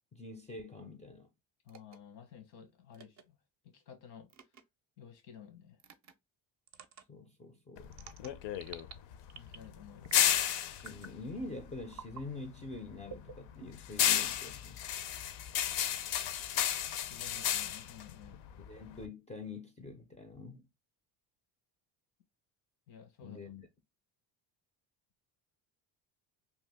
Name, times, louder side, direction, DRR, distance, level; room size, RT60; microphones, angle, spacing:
voice 1, 0.1-1.3 7.1-7.9 10.8-14.9 18.7-20.7 23.2-23.7, left 3 dB, 15° left, 0.4 m, -45 dB
voice 2, 1.7-3.2 3.7-4.3 5.0-5.8 9.3-10.2 17.0-18.4 22.9-23.4, left 8 dB, 90° left, 1.1 m, -53 dB
sound 1, 1.7-2.0 2.9-3.2 4.3-4.6 5.8-6.1 6.7-7.0 7.9-8.9 9.3-9.7 10.0-10.4 10.8-11.2 11.9-12.2 13.0-13.9, right 6 dB, 40° right, 0.5 m, -50 dB
sound 2, 7.8-12.3 12.6-19.1, left 10 dB, 65° left, 0.6 m, -33 dB
2.8 x 2.3 x 3.4 m
cardioid pair, 95°, 45 cm